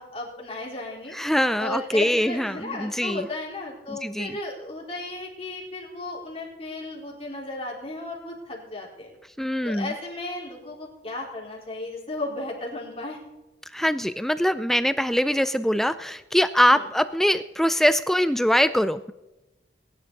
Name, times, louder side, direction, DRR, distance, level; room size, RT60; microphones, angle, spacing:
voice 1, 0.0-1.2 1.6-9.1 9.6-13.2 16.7-16.9, left 2 dB, 30° left, -3 dB, 4.1 m, -35 dB
voice 2, 1.1-3.3 3.9-4.3 9.4-9.9 13.7-19.1, equal, ahead, 12 dB, 0.4 m, -23 dB
21.0 x 11.0 x 4.1 m, 1.0 s
head